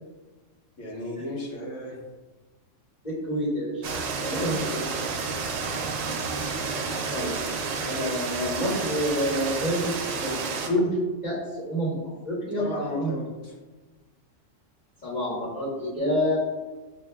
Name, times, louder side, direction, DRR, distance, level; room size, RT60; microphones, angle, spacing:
voice 1, 0.8-2.0 4.3-4.8 12.6-13.5, left 1 dB, 75° left, -4 dB, 1.3 m, -34 dB
voice 2, 3.0-3.8 4.2-4.8 7.1-7.3 7.8-10.4 10.7-10.9 11.2-11.9 12.2-12.6 13.0-13.1 15.0-16.4, equal, 35° left, -8 dB, 1.2 m, -27 dB
sound 1, 3.8-10.7, right 4 dB, 85° right, 1.0 m, -30 dB
6.4 x 2.7 x 2.3 m, 1.2 s
omnidirectional pair, 1.3 m